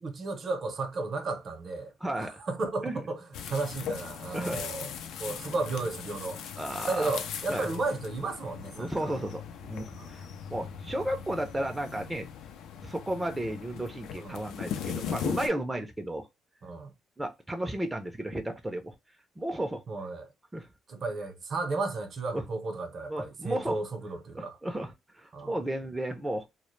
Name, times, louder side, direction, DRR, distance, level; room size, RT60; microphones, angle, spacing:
voice 1, 0.0-4.9 5.2-6.4 6.9-9.2 10.0-10.1 14.2-14.4 16.6-16.9 19.9-20.3 20.9-24.6 25.3-25.6, right 3 dB, 55° right, 0.6 m, -34 dB
voice 2, 2.0-2.4 2.8-3.0 4.3-4.6 6.6-7.1 7.5-7.7 8.8-12.3 12.8-16.3 17.2-18.9 19.4-19.8 20.5-20.7 22.3-22.4 23.1-23.8 24.3-26.5, right 1 dB, 10° right, 0.4 m, -33 dB
sound 1, 3.3-15.5, left 7 dB, 85° left, 0.3 m, -39 dB
2.1 x 2.0 x 3.0 m
cardioid pair, 90°, 0 cm